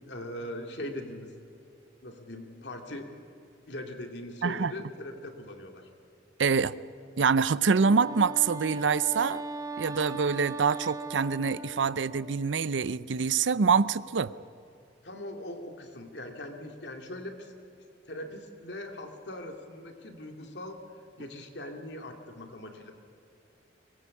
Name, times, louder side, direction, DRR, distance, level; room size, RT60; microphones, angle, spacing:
voice 1, 0.0-1.3 2.0-3.1 3.7-5.9 15.0-17.5 18.1-20.8 21.2-22.9, left 1 dB, 65° left, 4 dB, 2.5 m, -40 dB
voice 2, 6.4-6.7 7.2-9.4 9.8-14.3, right 5 dB, 85° right, 17 dB, 0.6 m, -25 dB
Wind instrument woodwind instrument, 7.7-12.3, right 2 dB, 20° right, 1.0 m, -38 dB
23.0 x 20.0 x 8.5 m, 2.5 s
head